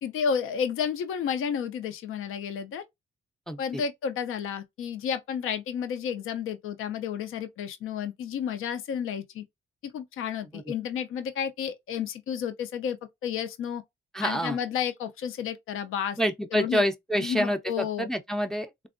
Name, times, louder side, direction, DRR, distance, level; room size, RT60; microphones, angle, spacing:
voice 1, 0.0-2.8 3.6-9.4 9.8-13.8 14.2-16.2 16.5-16.8 17.2-18.1, left 7 dB, 90° left, 0.5 m, -31 dB
voice 2, 3.5-3.8 10.5-10.6 14.1-14.6 16.2-18.9, equal, ahead, 0.4 m, -28 dB
3.3 x 2.0 x 2.4 m
cardioid pair, 90°, 21 cm